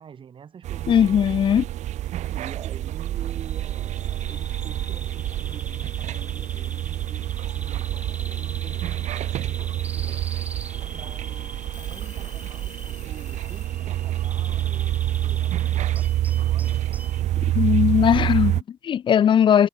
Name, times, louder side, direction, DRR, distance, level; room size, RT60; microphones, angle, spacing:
voice 1, 0.0-1.5 2.3-10.3 10.9-17.0, right 7 dB, 40° right, 2.4 m, -46 dB
sound 1, 0.6-18.6, right 13 dB, 70° right, 0.7 m, -27 dB
voice 2, 0.9-1.6 17.5-19.7, left 9 dB, 40° left, 0.4 m, -19 dB
Alarm / Clock, 2.1-2.9 4.0-4.1 4.3-5.1 6.3-6.9 8.3-8.4 9.2-9.6 10.0-10.1 10.5-10.7 11.2-11.3 11.6-13.7, left 14 dB, 85° left, 7.0 m, -52 dB
Bird vocalization bird call bird song, 3.2-17.2, right 2 dB, 10° right, 2.3 m, -43 dB
cardioid pair, 125°, 12 cm